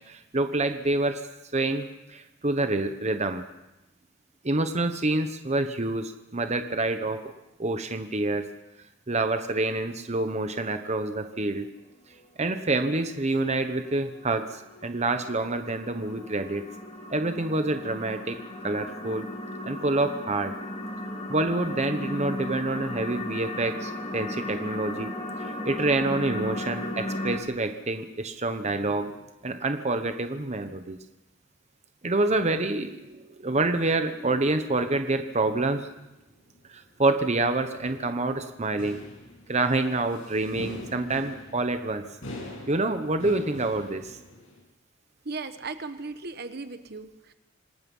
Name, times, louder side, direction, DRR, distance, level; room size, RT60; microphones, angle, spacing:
voice 1, 0.3-1.1 1.5-1.9 2.4-3.4 4.4-7.2 7.6-8.4 9.1-11.6 12.4-14.4 14.8-16.6 17.1-18.4 18.6-19.2 19.7-20.5 21.3-25.1 25.6-29.1 29.4-31.0 32.0-32.9 33.4-35.8 37.0-39.0 39.5-42.0 42.7-44.0, right 2 dB, 35° right, 8 dB, 1.0 m, -27 dB
sound 1, 12.1-27.4, left 1 dB, 35° left, 3.0 m, -36 dB
sound 2, 35.9-44.6, left 1 dB, 90° left, 6.8 m, -43 dB
voice 2, 45.2-47.3, right 3 dB, 55° right, 10 dB, 1.1 m, -37 dB
26.5 x 19.0 x 5.5 m, 0.98 s
head